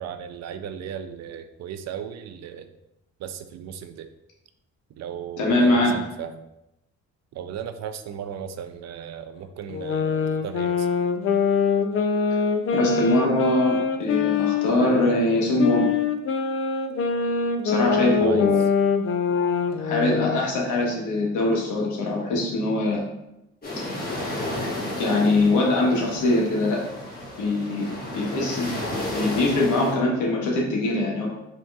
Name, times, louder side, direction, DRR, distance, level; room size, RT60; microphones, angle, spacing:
voice 1, 0.0-2.7 3.2-4.1 4.9-6.4 7.3-10.9 18.2-18.5, right 8 dB, 60° right, 9 dB, 0.4 m, -36 dB
voice 2, 5.4-6.0 12.7-15.9 17.6-18.6 19.8-23.0 24.6-24.7 25.0-26.8 27.4-27.9 28.1-28.7 29.1-31.3, left 2 dB, 85° left, -2 dB, 1.1 m, -22 dB
sound 1, 9.7-15.1 15.6-20.5, left 5 dB, 45° left, 0.5 m, -24 dB
sound 2, 23.6-29.9, left 1 dB, 30° left, 1.3 m, -32 dB
5.2 x 2.9 x 2.3 m, 0.88 s
cardioid pair, 90°, 30 cm